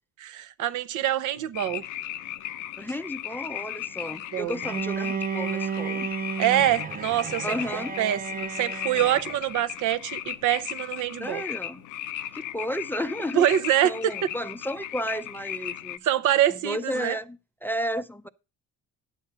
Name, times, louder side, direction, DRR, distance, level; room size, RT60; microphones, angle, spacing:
voice 1, 0.2-1.8 4.3-4.5 6.4-7.4 7.7-11.4 13.3-14.1 16.0-17.2, right 12 dB, 80° right, 0.8 m, -25 dB
sound 1, 1.5-16.0, left 12 dB, 85° left, 0.7 m, -36 dB
voice 2, 2.8-6.1 7.4-8.0 11.2-11.8 12.3-13.5 13.8-16.1 16.5-18.3, equal, 5° left, 0.4 m, -33 dB
Bowed string instrument, 4.6-9.5, right 7 dB, 30° right, 0.7 m, -33 dB
10.0 x 6.7 x 5.5 m
cardioid pair, 90°, 30 cm